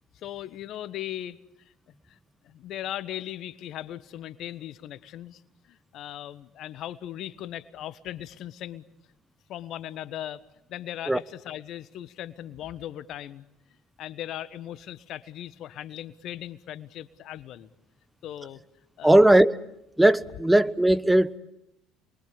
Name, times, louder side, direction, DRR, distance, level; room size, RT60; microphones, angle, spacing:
voice 1, 0.1-1.4 2.1-2.2 2.4-5.4 5.7-8.8 9.5-10.4 10.7-13.4 14.0-17.7 18.2-18.6 19.0-19.1, left 12 dB, 60° left, 1.3 m, -38 dB
voice 2, 19.0-19.5 20.0-21.4, right 1 dB, 5° right, 1.1 m, -18 dB
29.5 x 23.0 x 8.7 m
hypercardioid pair, 65°, 0 cm